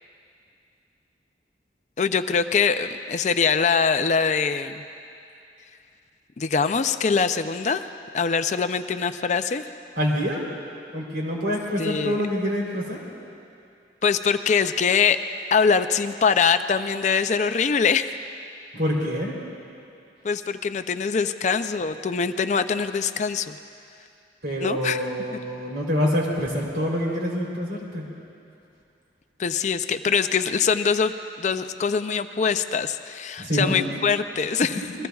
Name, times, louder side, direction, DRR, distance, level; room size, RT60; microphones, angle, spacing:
voice 1, 2.0-4.8 6.4-9.7 11.8-12.2 14.0-15.2 15.5-18.1 20.2-23.6 24.6-25.0 29.4-34.8, left 5 dB, 40° left, 10 dB, 0.4 m, -23 dB
voice 2, 10.0-10.4 10.9-13.0 18.7-19.3 24.4-28.0 33.4-33.8 34.7-35.1, equal, 60° right, -2 dB, 3.4 m, -26 dB
27.5 x 21.5 x 2.4 m, 2.5 s
head